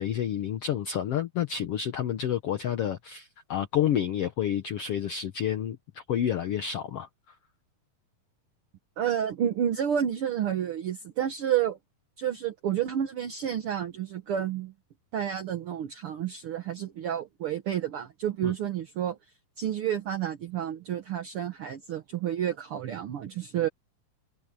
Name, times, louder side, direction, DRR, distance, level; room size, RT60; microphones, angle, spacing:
voice 1, 0.0-7.4 18.4-18.5, left 10 dB, 75° left, 1.4 m, -29 dB
voice 2, 9.0-11.8 12.2-14.7 15.1-19.2 19.6-23.7, right 10 dB, 70° right, 1.3 m, -30 dB
omnidirectional pair, 4.0 m